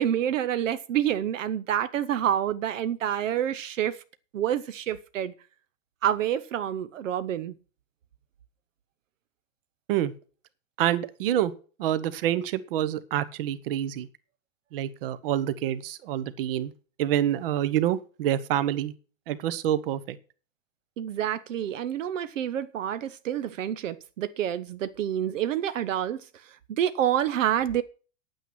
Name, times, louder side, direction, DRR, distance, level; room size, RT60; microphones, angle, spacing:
voice 1, 0.0-4.0 4.3-5.3 6.0-7.5 21.0-27.8, right 10 dB, 65° right, 1.0 m, -28 dB
voice 2, 10.8-11.5 11.8-14.1 14.7-16.7 17.0-18.9 19.3-20.2, right 11 dB, 45° right, 1.1 m, -27 dB
9.7 x 9.2 x 6.1 m
supercardioid pair, 170°, 40 cm